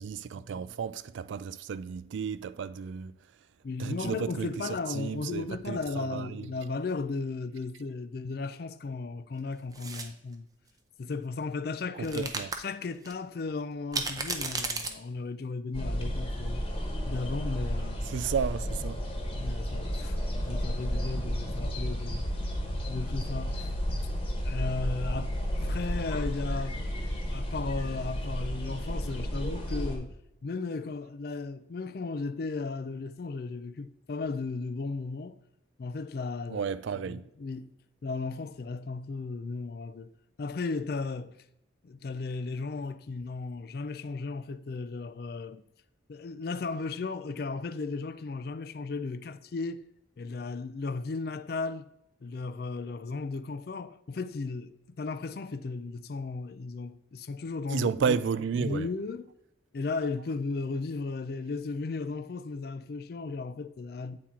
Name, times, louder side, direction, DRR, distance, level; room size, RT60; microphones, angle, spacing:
voice 1, 0.0-3.2 3.8-4.5 4.9-6.5 11.9-12.5 18.1-19.0 36.5-37.3 57.7-58.9, right 6 dB, 80° right, 0.3 m, -32 dB
voice 2, 3.6-10.5 11.0-12.3 12.6-16.6 17.1-18.1 19.3-22.3 22.9-23.7 24.4-26.9 27.3-30.2 30.4-35.4 35.8-36.7 37.1-37.7 38.0-40.1 40.4-41.4 41.8-45.6 46.1-49.9 50.2-51.9 52.2-58.2 58.6-59.3 59.7-64.2, left 3 dB, 55° left, 0.4 m, -35 dB
sound 1, 9.7-10.1 12.0-12.6 13.1-13.2 13.9-14.9, right 4 dB, 20° right, 0.6 m, -33 dB
sound 2, 15.7-30.0, equal, 30° left, 1.2 m, -32 dB
8.5 x 4.4 x 3.7 m
head